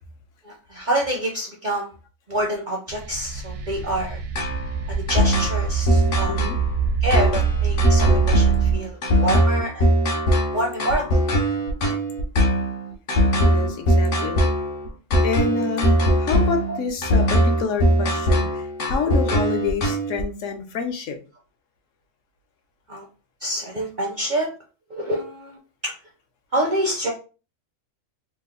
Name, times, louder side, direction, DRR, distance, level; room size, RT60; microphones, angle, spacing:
voice 1, 0.4-1.9 2.3-4.2 5.1-6.4 7.0-9.9 10.5-11.2 16.7-16.8 22.9-23.0 23.4-24.5 24.9-25.6 25.8-25.9 26.5-27.1, right 1 dB, 55° right, 0 dB, 0.5 m, -26 dB
sound 1, 2.9-8.8, right 6 dB, 85° right, 1.0 m, -24 dB
sound 2, 4.3-20.2, equal, 55° left, 0.7 m, -20 dB
voice 2, 6.3-6.6 13.4-14.4 15.2-21.2, left 5 dB, 70° left, 4 dB, 1.0 m, -28 dB
3.1 x 2.0 x 3.5 m, 0.34 s
omnidirectional pair, 1.4 m